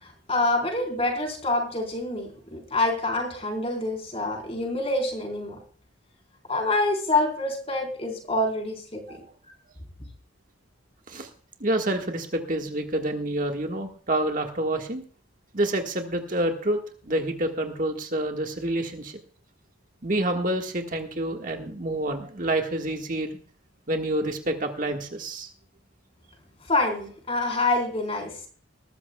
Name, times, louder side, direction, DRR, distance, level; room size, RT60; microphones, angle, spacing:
voice 1, 0.0-5.6 6.5-9.2 26.7-28.3, left 2 dB, 30° left, 3 dB, 4.1 m, -26 dB
voice 2, 11.6-15.0 15.5-19.2 20.0-23.3 23.9-25.5, right 1 dB, 40° right, 4 dB, 1.6 m, -28 dB
21.0 x 13.5 x 2.3 m, 0.43 s
head